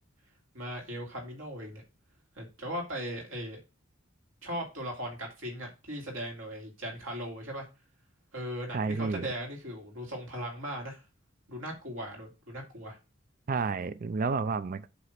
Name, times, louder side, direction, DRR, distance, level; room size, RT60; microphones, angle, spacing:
voice 1, 0.5-1.8 2.4-3.6 4.4-7.7 8.3-11.0 11.5-13.0, equal, 80° right, 2.6 m, -38 dB
voice 2, 8.7-9.3 13.5-14.9, right 4 dB, 45° right, 0.4 m, -30 dB
8.0 x 3.0 x 5.8 m
head